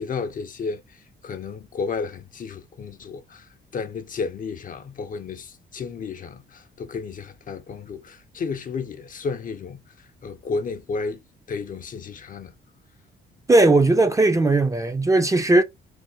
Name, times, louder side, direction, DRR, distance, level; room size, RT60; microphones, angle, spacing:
voice 1, 0.0-9.8 10.2-11.2 11.5-12.5, left 4 dB, 45° left, 0.5 m, -32 dB
voice 2, 13.5-15.6, right 2 dB, 15° right, 0.4 m, -17 dB
3.3 x 2.1 x 2.9 m
cardioid pair, 90°, 20 cm